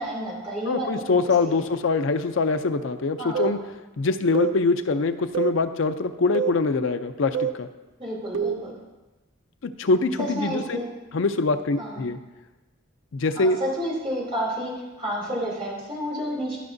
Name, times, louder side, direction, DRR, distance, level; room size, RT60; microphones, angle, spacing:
voice 1, 0.0-0.9 1.4-1.7 3.2-3.6 8.0-8.7 10.2-10.9 11.8-12.0 13.3-14.7 15.0-16.6, equal, 30° right, -6 dB, 3.0 m, -30 dB
voice 2, 0.7-3.6 4.0-7.7 9.6-10.8 11.1-12.2 13.1-13.6, left 3 dB, 70° left, 8 dB, 0.5 m, -24 dB
sound 1, 3.3-3.6 4.3-4.6 5.3-5.6 6.3-6.6 7.3-7.6 8.3-8.7, right 8 dB, 65° right, 0.4 m, -26 dB
14.0 x 5.8 x 2.6 m, 1.1 s
head